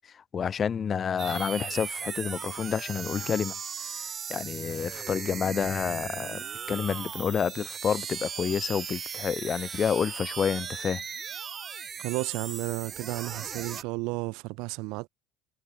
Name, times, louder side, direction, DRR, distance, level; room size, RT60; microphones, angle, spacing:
voice 1, 0.3-3.5 4.3-11.0, left 7 dB, 30° left, 2.2 m, -29 dB
sound 1, 1.2-13.8, right 7 dB, 30° right, 1.1 m, -37 dB
voice 2, 12.0-15.1, right 26 dB, 70° right, 1.5 m, -33 dB
supercardioid pair, 115°, 0 cm